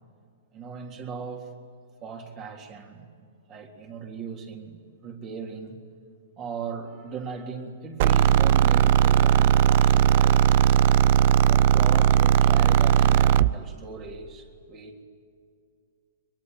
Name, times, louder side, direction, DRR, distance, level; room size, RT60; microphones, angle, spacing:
voice 1, 0.5-1.5 2.0-3.1 3.5-5.8 6.4-10.8 11.4-15.0, right 5 dB, 30° right, 2 dB, 3.7 m, -38 dB
sound 1, 8.0-13.5, right 10 dB, 50° right, 0.6 m, -18 dB
23.5 x 22.0 x 9.5 m, 2.3 s
hypercardioid pair, 140°, 0 cm